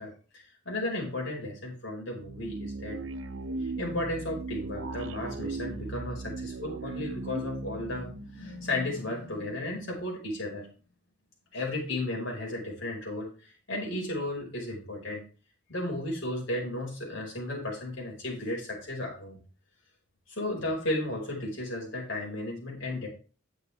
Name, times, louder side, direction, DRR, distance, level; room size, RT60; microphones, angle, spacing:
voice 1, 0.0-3.0 3.6-10.7 11.5-15.2 15.7-19.4 20.3-23.1, left 1 dB, 70° left, -2 dB, 5.2 m, -34 dB
sound 1, 2.2-9.4, right 3 dB, 80° right, 0.8 m, -38 dB
10.5 x 8.0 x 3.5 m, 0.37 s
head